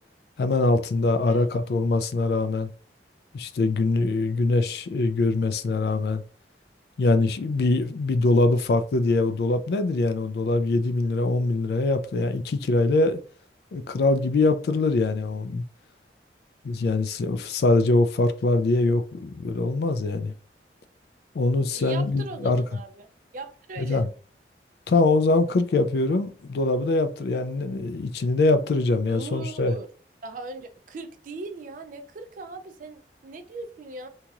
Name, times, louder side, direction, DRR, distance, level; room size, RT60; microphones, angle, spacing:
voice 1, 0.4-2.7 3.3-6.2 7.0-13.2 13.7-15.6 16.6-20.3 21.3-22.6 23.8-24.1 24.9-29.7, left 2 dB, 60° left, 0.3 m, -23 dB
voice 2, 21.7-23.1 23.3-24.0 29.0-29.9 30.2-34.1, right 3 dB, 45° right, 0.4 m, -39 dB
2.9 x 2.7 x 2.4 m
head